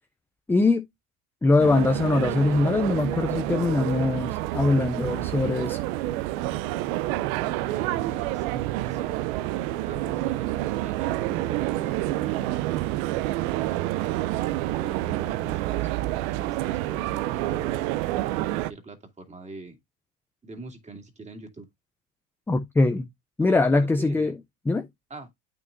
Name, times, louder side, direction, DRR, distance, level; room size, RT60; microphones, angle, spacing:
voice 1, 0.5-0.8 1.4-5.8 22.5-23.1 23.4-24.4 24.7-24.9, left 3 dB, 5° left, 0.4 m, -22 dB
sound 1, 1.6-18.7, right 16 dB, 75° right, 0.7 m, -28 dB
voice 2, 7.6-12.7 14.7-19.8 20.4-21.7 23.7-24.3 25.1-25.3, right 2 dB, 15° right, 2.2 m, -43 dB
8.5 x 6.1 x 2.5 m
supercardioid pair, 120°, 42 cm